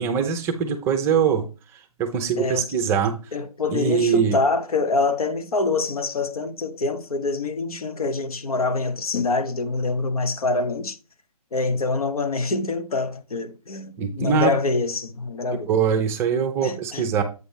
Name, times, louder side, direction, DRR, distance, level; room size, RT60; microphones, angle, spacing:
voice 1, 0.0-1.4 1.7-3.2 3.7-4.4 14.0-14.5 15.7-17.2, right 7 dB, 15° right, 0.6 m, -22 dB
voice 2, 3.3-11.0 11.5-15.7 16.6-17.1, left 3 dB, 75° left, 1.1 m, -25 dB
7.9 x 3.0 x 5.5 m
figure-of-eight pair, 140°, 19 cm